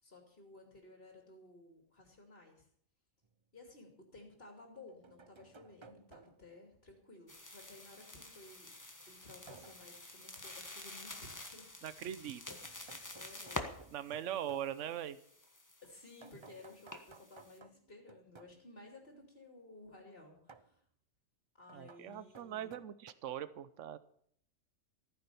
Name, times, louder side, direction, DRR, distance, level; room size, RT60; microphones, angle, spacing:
voice 1, 0.0-2.7 3.5-8.7 9.1-11.7 13.1-13.8 14.2-14.5 15.8-20.8 21.6-22.7, left 2 dB, 45° left, 2 dB, 3.0 m, -56 dB
sound 1, 3.2-3.3 4.6-6.6 9.5-9.9 12.6-14.7 16.2-18.6 20.5-20.8 21.7-23.1, right 4 dB, 30° right, 0.5 m, -59 dB
sound 2, 7.3-17.6, left 1 dB, 15° left, 1.4 m, -49 dB
voice 2, 11.8-12.4 13.9-15.2 21.7-24.0, right 10 dB, 70° right, 15 dB, 1.1 m, -41 dB
14.5 x 10.0 x 6.9 m, 0.63 s
omnidirectional pair, 1.3 m